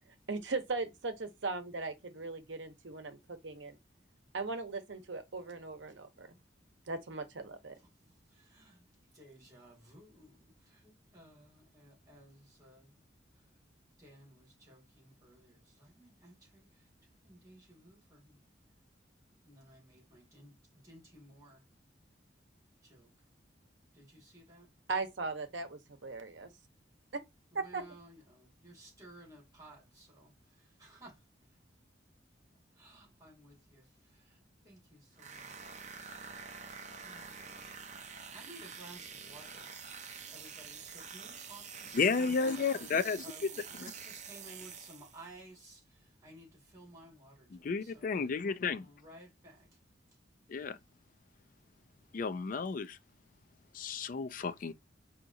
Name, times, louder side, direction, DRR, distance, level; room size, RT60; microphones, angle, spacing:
voice 1, 0.3-3.8 4.3-6.3 6.9-7.7 24.9-26.5 27.5-27.8, right 3 dB, 75° right, 0.8 m, -38 dB
voice 2, 7.8-8.8 9.1-13.0 13.3-13.4 14.0-18.4 19.4-21.6 22.8-23.1 23.9-24.7 27.5-31.2 32.7-35.7 36.9-37.5 38.1-39.7 40.3-49.8, right 1 dB, 20° right, 2.0 m, -57 dB
sound 1, 35.2-45.3, right 6 dB, 40° right, 0.6 m, -47 dB
voice 3, 41.9-43.3 47.5-48.9 50.5-50.8 52.1-53.0 53.7-54.7, left 5 dB, 45° left, 0.4 m, -32 dB
4.7 x 2.8 x 2.6 m
head